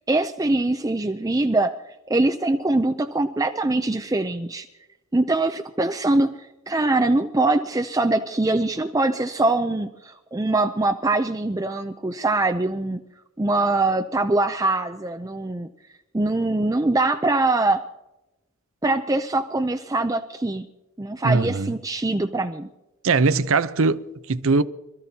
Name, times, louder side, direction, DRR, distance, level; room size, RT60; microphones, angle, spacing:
voice 1, 0.1-1.7 2.1-4.7 5.1-6.3 6.7-13.0 13.4-15.7 16.1-17.8 18.8-20.7 21.0-22.7, right 2 dB, 15° right, 0.4 m, -23 dB
voice 2, 21.2-21.7 23.0-24.6, right 4 dB, 65° right, 0.7 m, -21 dB
26.5 x 13.5 x 2.8 m
head